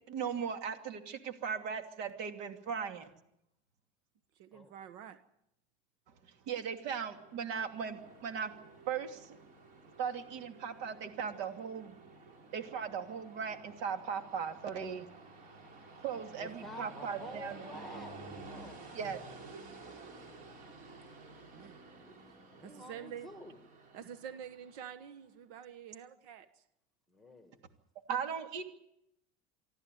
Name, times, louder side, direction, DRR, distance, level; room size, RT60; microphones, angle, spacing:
voice 1, 0.1-3.1 6.5-8.5 8.9-9.4 10.0-12.0 12.5-15.1 16.0-17.6 18.9-19.2 28.1-28.6, right 7 dB, 60° right, 6 dB, 2.8 m, -38 dB
voice 2, 4.4-5.2 21.5-21.8 22.6-23.3 23.9-26.6, right 9 dB, 80° right, 11 dB, 1.3 m, -47 dB
Train, 6.5-25.2, right 3 dB, 45° right, 4.8 m, -52 dB
voice 3, 16.4-18.2 18.5-19.4 22.0-22.2 22.6-23.6 25.3-25.4 27.1-27.7, left 1 dB, ahead, 6 dB, 1.8 m, -50 dB
25.0 x 14.0 x 9.3 m, 0.81 s
cardioid pair, 150°, 19 cm